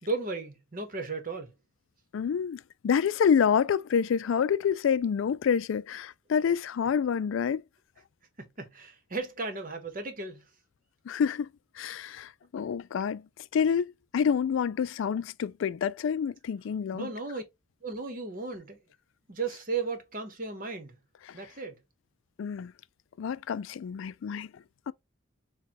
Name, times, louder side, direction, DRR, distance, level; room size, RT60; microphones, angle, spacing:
voice 1, 0.0-1.5 8.4-10.4 16.9-17.4 17.8-18.8 19.3-21.0 21.3-21.8, right 4 dB, 45° right, 1.1 m, -35 dB
voice 2, 2.1-7.6 11.1-11.5 11.8-13.2 13.5-17.1 21.3-21.4 22.4-22.7 23.2-24.9, left 7 dB, 75° left, 0.3 m, -28 dB
6.6 x 2.3 x 2.9 m
head